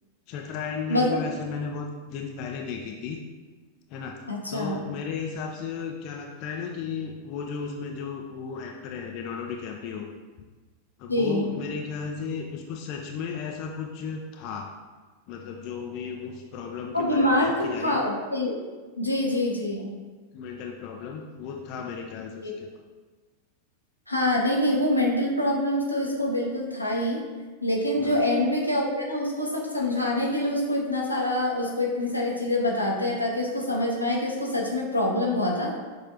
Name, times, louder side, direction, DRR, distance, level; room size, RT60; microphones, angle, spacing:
voice 1, 0.3-3.2 3.9-4.2 4.5-10.1 11.0-14.7 15.3-18.1 20.3-22.7 28.0-28.2, left 6 dB, 40° left, 2 dB, 0.4 m, -35 dB
voice 2, 4.3-4.8 11.1-11.5 16.9-18.6 19.0-19.9 22.4-22.5 24.1-27.2 27.6-35.7, left 1 dB, 85° left, -2 dB, 0.7 m, -25 dB
6.2 x 2.5 x 2.8 m, 1.3 s
figure-of-eight pair, 90°, 0 cm